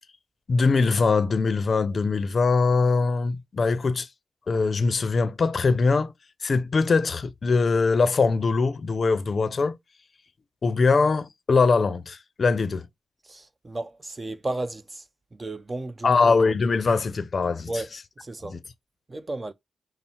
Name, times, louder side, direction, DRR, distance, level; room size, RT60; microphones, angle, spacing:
voice 1, 0.5-4.1 4.5-6.1 6.4-9.8 10.6-12.9 16.0-17.8 18.4-18.6, left 4 dB, 50° left, 0.5 m, -22 dB
voice 2, 13.2-15.0 15.3-16.4 17.7-17.9 18.2-18.6 19.1-19.5, right 2 dB, 30° right, 0.5 m, -33 dB
5.5 x 2.0 x 4.3 m
cardioid pair, 75°, 0 cm